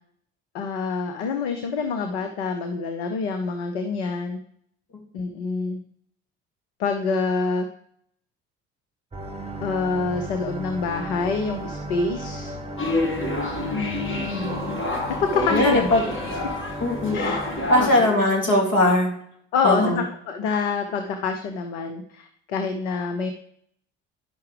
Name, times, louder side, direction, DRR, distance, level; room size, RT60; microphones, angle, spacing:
voice 1, 0.5-4.4 5.1-5.8 6.8-7.7 9.6-12.5 13.7-14.8 15.3-16.0 17.1-17.4 17.8-18.2 19.5-23.3, left 4 dB, 75° left, 6 dB, 0.8 m, -27 dB
sound 1, 9.1-18.1, equal, 15° right, 1.2 m, -35 dB
sound 2, 12.8-17.9, left 2 dB, 35° left, 1.9 m, -28 dB
voice 2, 15.5-16.0 16.8-17.3 17.7-19.1 19.6-20.0, left 1 dB, 60° left, 0 dB, 2.6 m, -20 dB
10.5 x 5.7 x 3.3 m, 0.68 s
hypercardioid pair, 55°, 35 cm